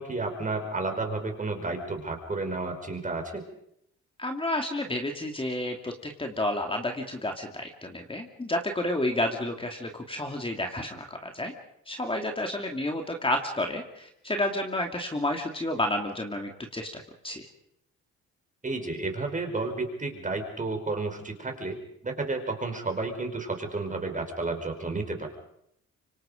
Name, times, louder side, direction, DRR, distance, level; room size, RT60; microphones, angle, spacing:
voice 1, 0.0-3.4 18.6-21.8 22.0-25.3, right 3 dB, 25° right, 4 dB, 5.0 m, -31 dB
voice 2, 4.2-11.5 11.9-17.4, left 1 dB, 15° left, 3 dB, 2.5 m, -30 dB
26.0 x 24.5 x 5.2 m, 0.75 s
cardioid pair, 90°, 30 cm